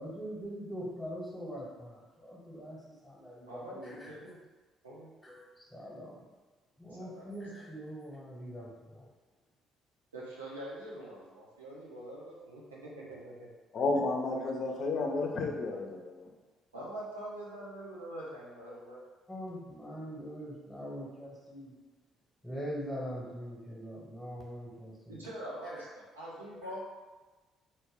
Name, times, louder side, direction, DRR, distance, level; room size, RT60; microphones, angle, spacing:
voice 1, 0.0-4.1 5.2-6.2 6.8-9.1 19.3-21.7 22.4-25.3 26.5-26.8, equal, 5° left, -6 dB, 0.8 m, -43 dB
voice 2, 3.5-4.4 4.8-5.1 6.9-7.3 10.1-13.5 16.7-19.0 25.1-26.8, right 1 dB, 85° right, -6 dB, 0.5 m, -44 dB
voice 3, 13.7-16.2, left 3 dB, 55° left, 1 dB, 0.4 m, -31 dB
2.1 x 2.1 x 3.4 m, 1.3 s
figure-of-eight pair, 45°, 0 cm